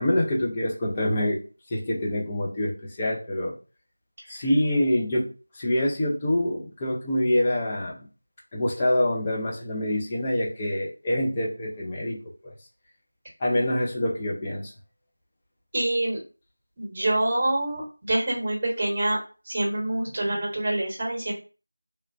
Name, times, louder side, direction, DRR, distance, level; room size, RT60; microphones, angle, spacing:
voice 1, 0.0-1.4 1.7-3.6 4.3-8.1 8.5-12.5 13.4-14.7, left 1 dB, 15° left, -2 dB, 0.4 m, -26 dB
voice 2, 15.7-16.2 16.8-19.2 19.5-21.3, right 1 dB, 25° right, -2 dB, 1.0 m, -26 dB
3.0 x 2.1 x 2.4 m, 0.33 s
figure-of-eight pair, 175°, 0 cm